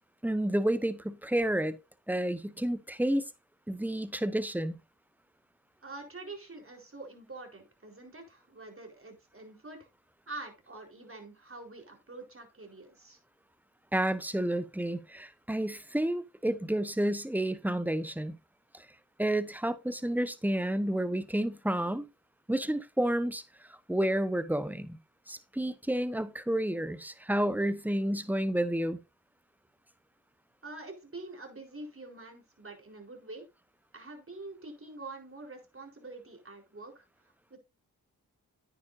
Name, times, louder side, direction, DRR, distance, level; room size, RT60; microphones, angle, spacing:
voice 1, 0.2-1.8 2.1-3.2 3.7-4.8 13.9-18.3 18.7-18.9 19.2-22.1 22.5-23.4 23.7-25.0 25.3-29.0, right 1 dB, 5° right, 1.0 m, -30 dB
voice 2, 5.8-9.9 10.3-13.2 30.6-33.4 33.9-37.6, right 2 dB, 35° right, 4.2 m, -46 dB
10.0 x 9.5 x 2.6 m
supercardioid pair, 40°, 39 cm